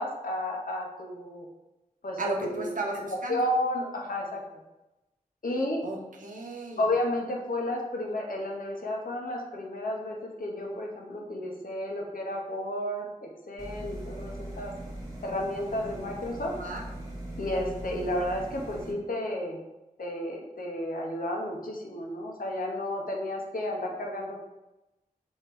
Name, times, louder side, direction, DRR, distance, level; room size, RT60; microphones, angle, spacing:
voice 1, 0.0-1.5 2.0-2.7 3.3-4.4 5.4-5.8 6.8-14.7 15.2-16.5 17.4-19.6 20.0-24.4, left 1 dB, 80° left, 0 dB, 0.8 m, -32 dB
voice 2, 2.2-3.4 5.8-6.8 16.6-16.8, right 2 dB, 65° right, -1 dB, 0.9 m, -34 dB
sound 1, 13.6-18.9, right 1 dB, 20° right, 1.2 m, -40 dB
3.3 x 3.1 x 4.5 m, 1.0 s
wide cardioid pair, 70°, 15 cm